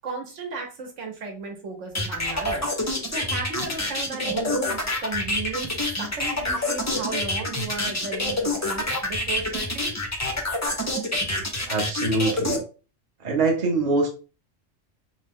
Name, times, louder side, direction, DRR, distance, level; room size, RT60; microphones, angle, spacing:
voice 1, 0.0-9.9, right 4 dB, 75° right, 3 dB, 1.1 m, -34 dB
sound 1, 1.9-12.6, left 1 dB, 25° left, 0.4 m, -27 dB
voice 2, 11.7-12.6 13.2-14.1, right 3 dB, 40° right, 1 dB, 0.8 m, -23 dB
3.0 x 2.1 x 3.4 m, 0.34 s
omnidirectional pair, 1.3 m